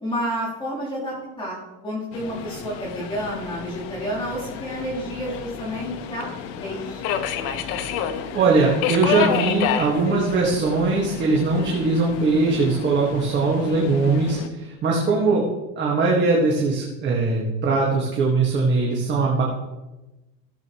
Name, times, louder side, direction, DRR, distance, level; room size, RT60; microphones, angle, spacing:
voice 1, 0.0-6.3 6.6-7.1 13.7-14.2, equal, 15° left, -8 dB, 3.5 m, -30 dB
Subway metro underground, 2.1-14.5, left 8 dB, 80° left, 1.0 m, -30 dB
voice 2, 8.3-15.5 15.8-19.4, right 3 dB, 35° right, -3 dB, 1.8 m, -21 dB
16.0 x 7.8 x 3.1 m, 1.1 s
cardioid pair, 160°, 31 cm